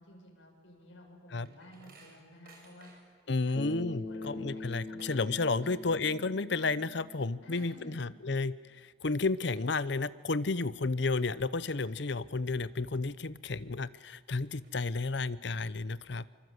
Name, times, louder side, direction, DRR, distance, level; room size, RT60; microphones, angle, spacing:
voice 1, 0.0-2.9 3.4-3.5 4.1-5.2 5.6-5.7 7.4-8.0, left 1 dB, 80° left, -1 dB, 7.0 m, -54 dB
sound 1, 0.8-3.2 3.6-3.7 4.0-5.7 6.0-6.4 6.7-6.8 7.0-8.4 8.9-9.1 9.5-10.0 10.5-10.6 11.2-11.3 11.6-12.4 12.8-12.9 13.6-13.7 14.1-15.0, right 3 dB, 50° right, 6.2 m, -59 dB
voice 2, 3.3-16.3, left 3 dB, 60° left, 16 dB, 0.7 m, -32 dB
Bass guitar, 3.6-7.9, left 2 dB, 35° left, 1.6 m, -43 dB
25.5 x 25.0 x 8.1 m, 1.5 s
head